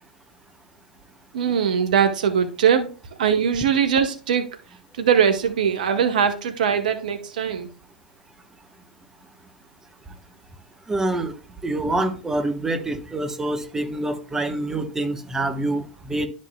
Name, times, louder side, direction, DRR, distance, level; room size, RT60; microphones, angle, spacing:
voice 1, 1.3-2.9 3.2-4.5 5.0-7.7, right 7 dB, 60° right, 0.9 m, -21 dB
voice 2, 10.9-11.3 11.6-16.3, right 2 dB, 10° right, 1.0 m, -26 dB
11.5 x 5.2 x 2.2 m
figure-of-eight pair, 90°, 5 cm